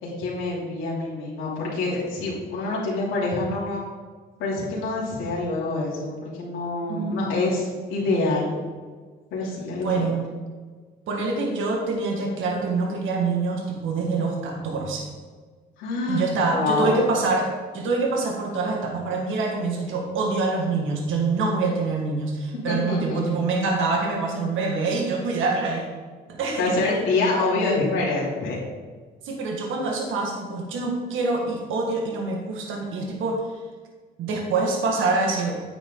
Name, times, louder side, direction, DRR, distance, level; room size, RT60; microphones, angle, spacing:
voice 1, 0.0-3.8 4.4-8.6 9.3-10.2 15.8-16.2 16.5-17.0 22.7-23.2 26.6-28.6, left 2 dB, 90° left, -6 dB, 3.0 m, -26 dB
voice 2, 6.9-7.4 9.8-10.3 11.1-15.1 16.1-25.8 26.3-26.7 29.2-33.4 34.2-35.6, right 3 dB, 80° right, 0 dB, 1.8 m, -25 dB
9.6 x 8.9 x 3.8 m, 1.5 s
cardioid pair, 90°, 20 cm